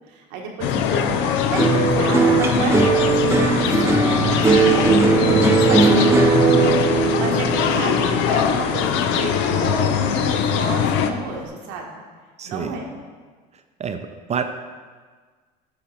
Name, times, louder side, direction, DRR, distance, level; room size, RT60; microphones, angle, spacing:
voice 1, 0.1-5.0 5.5-12.0 12.4-12.9, right 3 dB, 85° right, 0 dB, 1.2 m, -31 dB
sound 1, 0.6-11.1, left 8 dB, 70° left, 0.5 m, -22 dB
voice 2, 0.7-1.2 12.4-12.7 13.8-14.4, right 6 dB, 35° right, 7 dB, 0.5 m, -29 dB
sound 2, 1.6-10.0 10.3-11.0, right 4 dB, 15° right, 0.9 m, -19 dB
9.0 x 3.9 x 4.3 m, 1.5 s
supercardioid pair, 85°, 21 cm